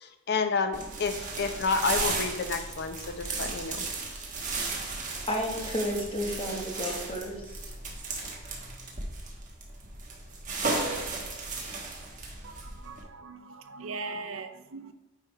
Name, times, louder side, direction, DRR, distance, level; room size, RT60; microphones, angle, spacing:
voice 1, 0.0-3.9, left 4 dB, 55° left, 0.7 m, -30 dB
sound 1, 0.7-13.0, right 3 dB, 40° right, 1.4 m, -35 dB
voice 2, 5.3-7.6, equal, 25° left, 1.2 m, -32 dB
voice 3, 12.4-14.9, right 3 dB, 75° right, 0.6 m, -40 dB
9.0 x 3.5 x 4.6 m
head